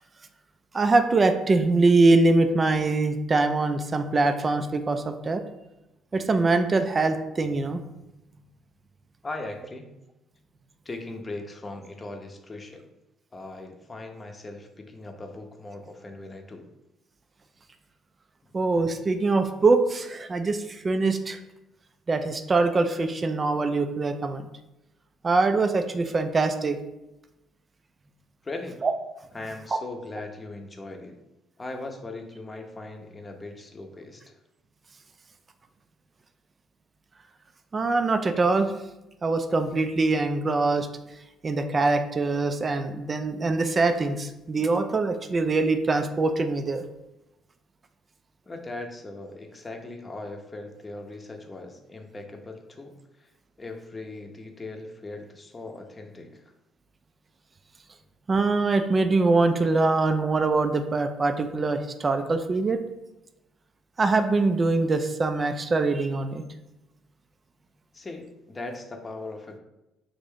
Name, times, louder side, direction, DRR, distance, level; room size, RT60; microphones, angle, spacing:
voice 1, 0.7-5.4 6.1-7.8 18.5-21.4 22.1-24.5 25.2-26.8 28.8-28.9 37.7-38.7 39.2-40.9 41.4-46.8 58.3-62.8 64.0-66.4, right 3 dB, 35° right, 8 dB, 0.4 m, -23 dB
voice 2, 9.2-9.9 10.8-12.9 13.3-16.7 28.4-28.8 29.3-31.2 31.6-34.4 48.5-53.3 53.6-56.4 67.9-69.6, left 2 dB, 30° left, 4 dB, 0.7 m, -39 dB
3.2 x 2.5 x 3.6 m, 0.94 s
hypercardioid pair, 60°, 0 cm